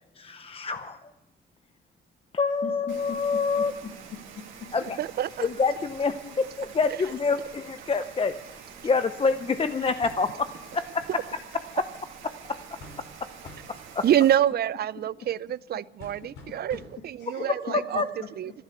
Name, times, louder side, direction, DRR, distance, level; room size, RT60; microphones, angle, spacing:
voice 1, 0.2-1.0 2.3-3.7 4.7-5.0 5.4-8.4 8.8-11.4 11.7-11.8 12.5-12.6 13.7-14.0 18.0-18.1, left 4 dB, 30° left, 0.7 m, -27 dB
voice 2, 2.6-4.7 6.2-6.4 15.2-15.3 16.2-16.8 17.2-18.5, left 5 dB, 65° left, 2.4 m, -41 dB
Rain, 2.9-14.3, right 7 dB, 85° right, 2.7 m, -46 dB
voice 3, 5.0-5.5 14.0-16.8 17.0-18.0 18.4-18.5, right 11 dB, 55° right, 0.5 m, -26 dB
sound 1, 10.0-10.4 12.8-13.2 13.4-13.9 16.0-17.2, left 2 dB, 90° left, 3.1 m, -47 dB
14.0 x 12.0 x 6.8 m
cardioid pair, 90°, 20 cm